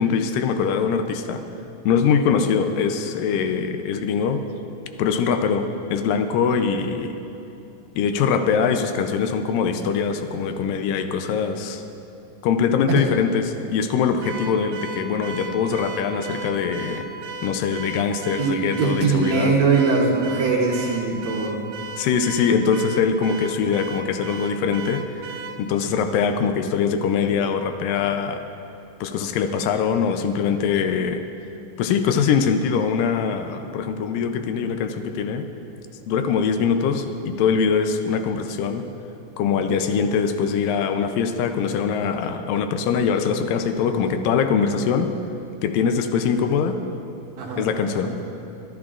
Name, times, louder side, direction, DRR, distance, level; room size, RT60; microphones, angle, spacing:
voice 1, 0.0-1.4 1.9-4.4 5.0-7.1 8.0-11.8 12.4-17.1 17.4-19.6 22.0-25.3 25.6-28.4 29.0-31.2 31.8-35.5 36.1-38.9 39.4-45.1 45.6-46.8 47.6-48.2, left 6 dB, 85° left, 7 dB, 2.3 m, -22 dB
Car / Alarm, 14.2-25.6, right 4 dB, 85° right, 2.3 m, -36 dB
voice 2, 18.3-21.7 47.4-48.1, right 4 dB, 65° right, -2 dB, 1.9 m, -22 dB
23.0 x 11.5 x 2.5 m, 2.8 s
omnidirectional pair, 3.9 m